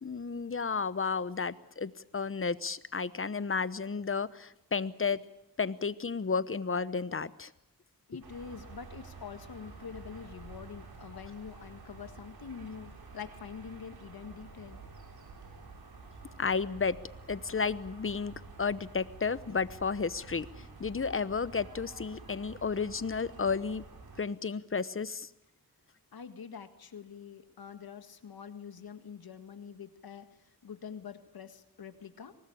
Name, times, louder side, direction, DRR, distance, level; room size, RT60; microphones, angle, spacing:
voice 1, 0.0-5.2 5.6-7.5 16.4-17.0 17.3-23.8 24.2-25.3, left 5 dB, 35° left, 15 dB, 1.0 m, -32 dB
voice 2, 8.1-14.8 26.1-32.3, left 6 dB, 80° left, 8 dB, 1.8 m, -45 dB
sound 1, 8.2-24.2, right 3 dB, 85° right, 3.8 m, -50 dB
24.0 x 19.5 x 8.6 m, 0.82 s
wide cardioid pair, 75°, 36 cm